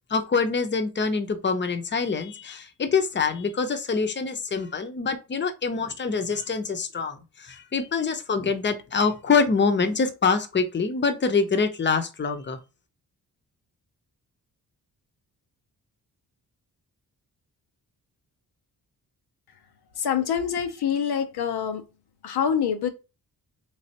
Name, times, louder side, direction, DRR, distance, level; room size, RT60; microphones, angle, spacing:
voice 1, 0.1-12.6, left 5 dB, 30° left, 0.7 m, -25 dB
voice 2, 20.0-21.8 22.2-22.9, left 8 dB, 75° left, 0.6 m, -25 dB
3.4 x 3.2 x 2.8 m
cardioid pair, 75°, 39 cm